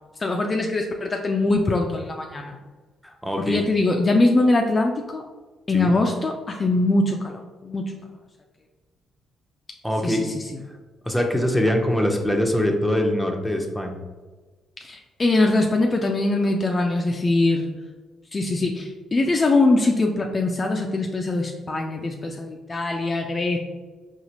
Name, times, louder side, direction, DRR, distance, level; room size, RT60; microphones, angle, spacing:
voice 1, 0.2-2.6 3.4-5.2 5.7-7.9 10.0-10.3 14.8-17.7 18.3-23.6, left 2 dB, 35° left, 2 dB, 0.4 m, -22 dB
voice 2, 3.0-3.7 5.7-5.9 9.8-10.3 11.0-14.0, left 1 dB, 5° left, 2 dB, 0.7 m, -23 dB
4.0 x 2.4 x 2.9 m, 1.3 s
hypercardioid pair, 45°, 0 cm